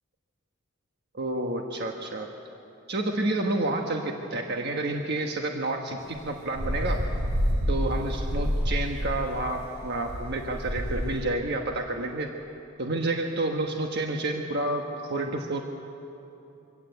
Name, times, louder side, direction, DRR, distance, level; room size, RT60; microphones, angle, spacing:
voice 1, 1.1-2.3 2.9-7.0 7.7-12.3 12.8-15.6, right 2 dB, 50° right, 2 dB, 1.3 m, -29 dB
sound 1, 6.1-11.2, equal, 80° right, 3.5 m, -28 dB
24.0 x 16.5 x 8.0 m, 2.9 s
head